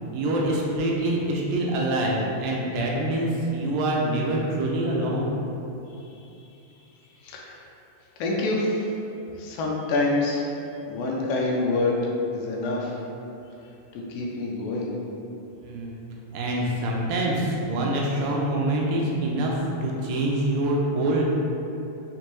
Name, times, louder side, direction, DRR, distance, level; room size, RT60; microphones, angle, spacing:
voice 1, 0.1-5.3 15.6-16.0 16.3-21.2, right 1 dB, 85° right, -2 dB, 2.2 m, -25 dB
voice 2, 7.2-7.6 8.2-8.9 9.4-10.4 10.9-12.0 12.3-13.0 13.9-14.9, left 2 dB, 80° left, -2 dB, 2.2 m, -26 dB
6.3 x 2.2 x 2.9 m, 2.8 s
omnidirectional pair, 3.9 m